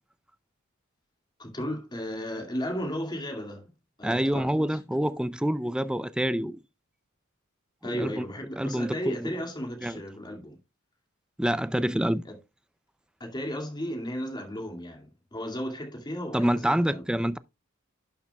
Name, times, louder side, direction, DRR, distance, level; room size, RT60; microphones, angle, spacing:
voice 1, 1.4-3.7 4.0-4.8 7.8-10.6 12.2-12.4 13.2-17.0, equal, 20° left, 2.3 m, -35 dB
voice 2, 4.0-6.6 7.8-8.2 8.6-9.4 9.8-10.0 11.4-12.2 16.3-17.4, equal, 5° right, 0.4 m, -27 dB
11.5 x 6.6 x 2.3 m
head